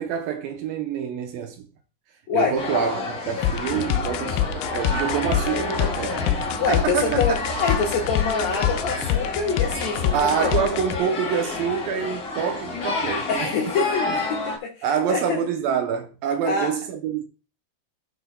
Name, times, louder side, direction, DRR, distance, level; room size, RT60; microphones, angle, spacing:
voice 1, 0.0-1.7 2.3-7.4 10.1-13.8 14.8-17.2, right 7 dB, 75° right, 2.3 m, -26 dB
voice 2, 2.3-2.6 6.6-10.6 13.3-15.4 16.5-16.7, left 5 dB, 65° left, 1.9 m, -26 dB
sound 1, 2.6-14.6, left 3 dB, 40° left, 1.3 m, -29 dB
sound 2, 3.4-11.0, left 11 dB, 80° left, 2.2 m, -25 dB
sound 3, 3.9-10.9, right 6 dB, 20° right, 3.0 m, -39 dB
15.5 x 6.2 x 2.2 m
omnidirectional pair, 4.5 m